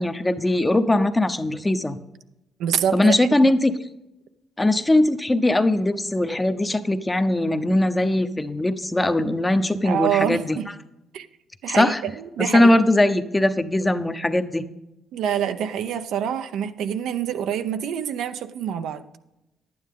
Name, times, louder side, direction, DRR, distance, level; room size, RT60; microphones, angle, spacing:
voice 1, 0.0-2.0 2.9-3.7 4.6-10.6 11.7-12.0 12.5-14.6, left 1 dB, 15° left, 9 dB, 0.7 m, -20 dB
voice 2, 2.6-3.1 9.8-10.7 11.1-11.3 11.6-12.7 15.1-19.0, right 9 dB, 80° right, 9 dB, 0.6 m, -26 dB
11.0 x 9.4 x 3.7 m, 0.92 s
cardioid pair, 90°, 0 cm